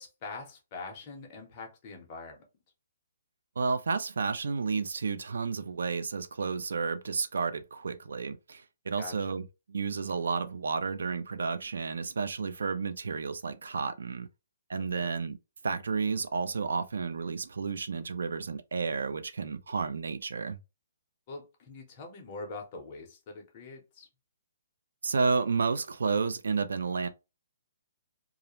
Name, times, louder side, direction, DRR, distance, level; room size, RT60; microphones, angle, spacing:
voice 1, 0.0-2.4 9.0-9.4 14.9-15.1 21.3-24.1, left 3 dB, 20° left, 0.6 m, -43 dB
voice 2, 3.6-14.3 14.7-15.4 15.6-20.6 25.0-27.1, right 4 dB, 85° right, 0.4 m, -31 dB
2.4 x 2.1 x 2.9 m
hypercardioid pair, 175°, 0 cm